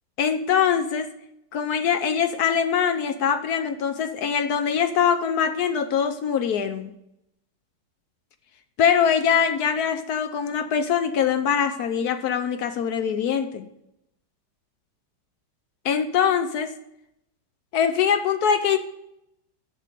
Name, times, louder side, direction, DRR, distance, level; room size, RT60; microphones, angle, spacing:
voice 1, 0.2-1.1 1.5-6.9 8.8-13.6 15.8-16.7 17.7-18.8, left 7 dB, 70° left, 10 dB, 1.1 m, -23 dB
7.5 x 6.3 x 6.7 m, 0.81 s
omnidirectional pair, 1.9 m